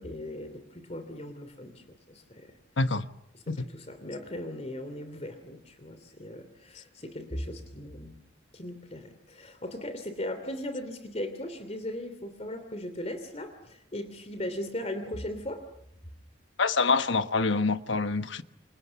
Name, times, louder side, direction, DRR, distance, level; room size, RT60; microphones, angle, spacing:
voice 1, 0.0-2.5 3.3-8.1 8.5-15.6, left 1 dB, 30° left, 2.8 m, -38 dB
voice 2, 2.8-3.1 3.5-3.7 16.6-18.4, left 4 dB, 65° left, 1.2 m, -26 dB
28.5 x 28.5 x 7.1 m
head